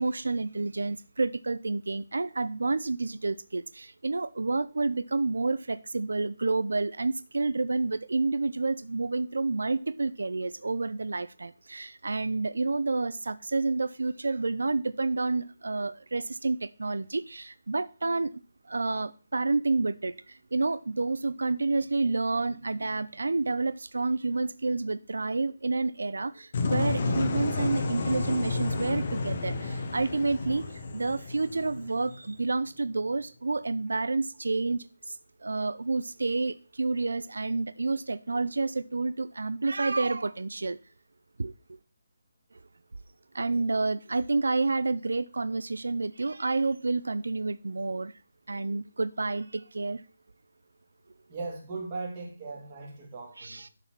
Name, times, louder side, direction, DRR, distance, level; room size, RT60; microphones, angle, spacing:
voice 1, 0.0-18.3 18.6-40.8 41.4-41.5 43.3-48.1 48.5-50.0 53.4-53.7, right 3 dB, 90° right, 0.5 m, -29 dB
sound 1, 26.5-32.4, left 3 dB, 35° left, 1.1 m, -31 dB
voice 2, 51.3-53.6, right 3 dB, 20° right, 2.3 m, -38 dB
11.5 x 4.1 x 6.0 m
hypercardioid pair, 175°, 0 cm